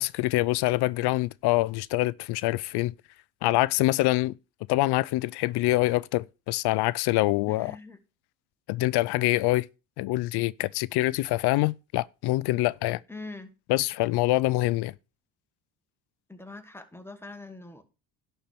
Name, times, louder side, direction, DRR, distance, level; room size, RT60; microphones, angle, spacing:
voice 1, 0.0-2.9 3.4-4.3 4.7-7.7 8.7-9.7 10.0-13.0 13.7-14.9, left 18 dB, 65° left, 0.5 m, -25 dB
voice 2, 7.5-8.0 13.1-13.5 16.3-17.8, left 2 dB, 5° left, 1.6 m, -43 dB
11.0 x 4.4 x 6.8 m
supercardioid pair, 90°, 42 cm